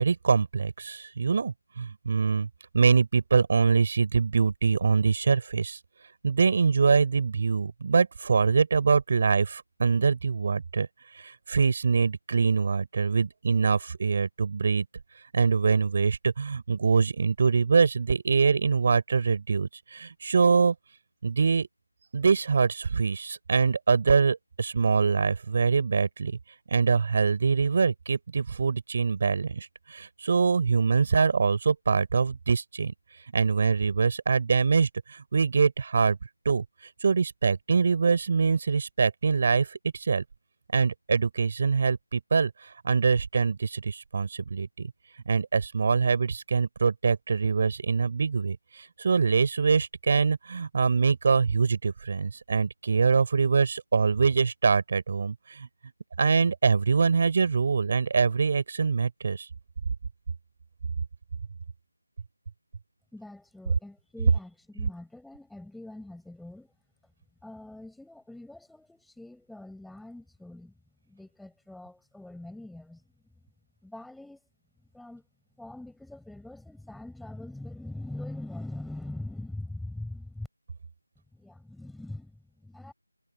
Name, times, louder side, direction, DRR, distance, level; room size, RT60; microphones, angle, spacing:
voice 1, 0.0-2.5 2.7-5.8 6.2-10.9 11.1-14.8 15.3-20.7 21.2-21.7 22.1-26.4 26.7-32.9 33.3-36.2 36.4-36.6 37.0-40.2 40.7-44.9 45.3-55.7 56.2-59.5, right 5 dB, 35° right, 5.2 m, -24 dB
voice 2, 63.1-66.7 67.0-67.1 67.4-70.8 71.0-73.3 73.8-74.4 74.8-75.3 75.6-80.5 81.3-82.9, left 1 dB, ahead, 5.7 m, -42 dB
figure-of-eight pair, 170°, 0 cm